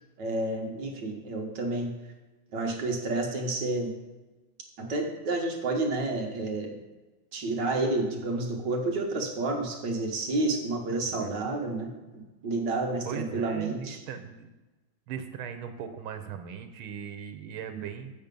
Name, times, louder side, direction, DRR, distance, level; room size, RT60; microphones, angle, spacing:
voice 1, 0.2-1.9 2.5-3.9 4.8-6.8 7.3-14.0 17.7-17.8, right 2 dB, 60° right, 1 dB, 1.8 m, -30 dB
voice 2, 10.9-11.4 13.0-14.5 15.1-18.1, right 7 dB, 85° right, 8 dB, 1.7 m, -39 dB
7.5 x 7.2 x 5.3 m, 1.1 s
omnidirectional pair, 2.2 m